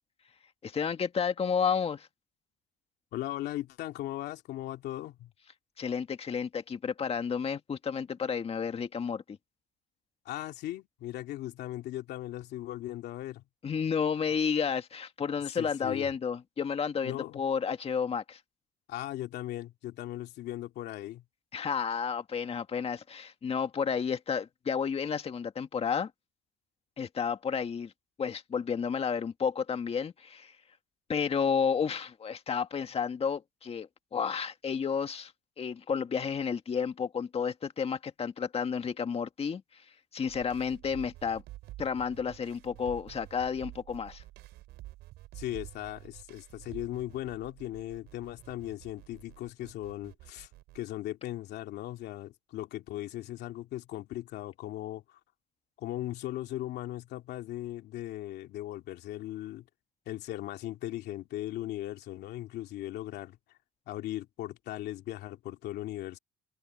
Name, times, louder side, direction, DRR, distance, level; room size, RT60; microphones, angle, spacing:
voice 1, 0.6-2.1 5.8-9.4 13.6-18.4 21.5-26.1 27.0-27.9 28.2-30.5 31.1-35.3 35.6-39.8 40.1-41.4 41.8-44.2, left 6 dB, 35° left, 1.9 m, -31 dB
voice 2, 3.1-5.3 10.2-13.4 15.5-16.1 17.0-17.4 18.9-21.2 45.3-50.5 50.7-55.2 55.8-59.7 60.1-63.4 63.9-66.2, left 14 dB, 75° left, 2.7 m, -38 dB
sound 1, 40.3-50.8, right 17 dB, 85° right, 4.9 m, -49 dB
cardioid pair, 110°, 17 cm